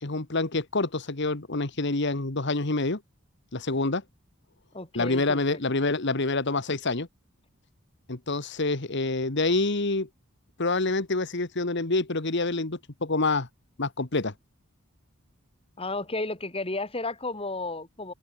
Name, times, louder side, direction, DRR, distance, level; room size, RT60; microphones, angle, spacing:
voice 1, 0.0-3.0 3.5-4.0 4.9-7.1 8.1-10.1 10.6-13.5 13.8-14.3, left 3 dB, 55° left, 1.7 m, -27 dB
voice 2, 4.7-5.6 15.8-18.1, left 2 dB, 25° left, 4.0 m, -33 dB
open air
head